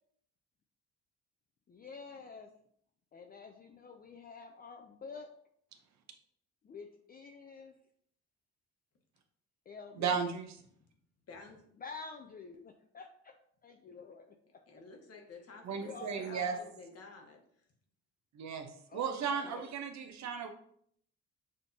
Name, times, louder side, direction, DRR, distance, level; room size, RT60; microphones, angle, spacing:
voice 1, 1.7-2.5 3.1-5.3 6.6-7.7 9.7-10.2 11.8-13.3 13.6-14.3 15.7-16.7 18.9-19.7, left 4 dB, 30° left, 4 dB, 0.4 m, -48 dB
voice 2, 10.0-10.5 15.6-16.6 18.3-20.5, right 6 dB, 65° right, 6 dB, 0.8 m, -35 dB
voice 3, 11.3-11.7 14.7-17.7, left 3 dB, 55° left, 2 dB, 1.2 m, -52 dB
6.3 x 2.7 x 2.7 m, 0.66 s
cardioid pair, 90°, 30 cm